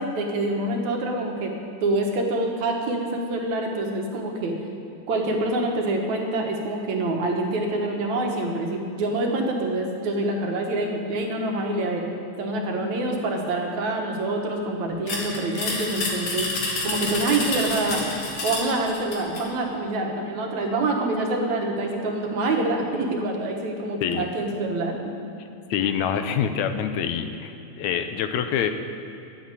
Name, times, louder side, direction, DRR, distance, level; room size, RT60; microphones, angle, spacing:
voice 1, 0.0-1.5 1.8-4.6 5.1-12.0 12.4-16.5 16.8-18.0 18.4-25.1, right 2 dB, 75° right, 1 dB, 2.7 m, -26 dB
sound 1, 15.1-19.5, left 2 dB, 60° left, 2.7 m, -29 dB
voice 2, 25.7-28.7, left 8 dB, 80° left, 8 dB, 2.0 m, -26 dB
11.5 x 8.5 x 8.1 m, 2.8 s
omnidirectional pair, 3.3 m